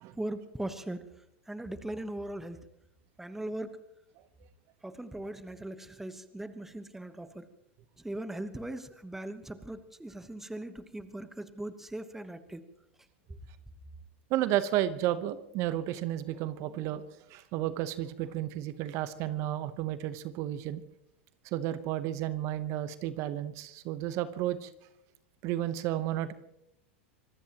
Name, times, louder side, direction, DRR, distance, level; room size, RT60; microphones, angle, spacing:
voice 1, 0.1-1.0 1.5-2.6 3.2-3.7 4.8-7.5 8.0-12.7, right 1 dB, 5° right, 11 dB, 1.1 m, -39 dB
voice 2, 14.3-20.8 21.4-24.7 25.4-26.3, right 13 dB, 45° right, 13 dB, 1.0 m, -32 dB
25.0 x 19.0 x 3.0 m, 0.81 s
hypercardioid pair, 115°, 7 cm